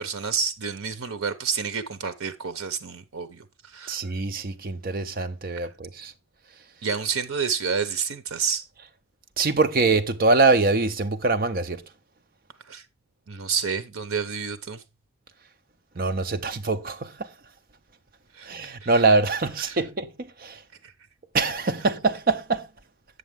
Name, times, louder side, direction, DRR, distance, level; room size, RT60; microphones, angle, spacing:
voice 1, 0.0-4.0 6.8-8.6 12.7-12.8 13.3-14.8 18.3-18.5 18.8-19.0 19.7-19.8 20.8-20.9, right 6 dB, 80° right, 0.8 m, -29 dB
voice 2, 3.9-6.1 9.4-11.8 16.0-17.3 18.4-20.6 21.3-22.7, right 3 dB, 40° right, 0.7 m, -24 dB
8.2 x 6.6 x 3.5 m
head